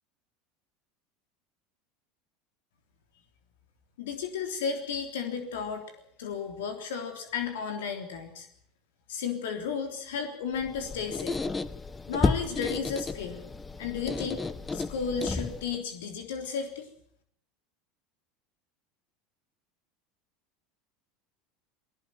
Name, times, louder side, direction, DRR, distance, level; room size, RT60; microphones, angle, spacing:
voice 1, 4.0-5.8 6.2-8.5 9.1-11.4 12.1-13.4 13.8-14.4 14.7-16.9, left 6 dB, 85° left, 5 dB, 3.4 m, -33 dB
Squeak, 10.6-15.8, left 3 dB, 15° left, 1.2 m, -32 dB
19.5 x 17.0 x 9.2 m, 0.67 s
supercardioid pair, 110°, 0 cm